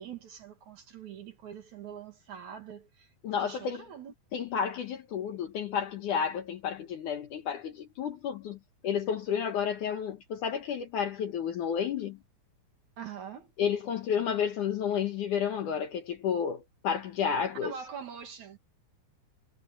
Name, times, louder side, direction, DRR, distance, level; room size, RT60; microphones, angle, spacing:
voice 1, 0.0-3.1 3.4-4.1 13.0-13.5 17.6-18.7, right 7 dB, 55° right, 2.8 m, -44 dB
voice 2, 3.2-3.9 4.3-12.2 13.6-17.8, left 7 dB, 65° left, 2.3 m, -31 dB
omnidirectional pair, 4.7 m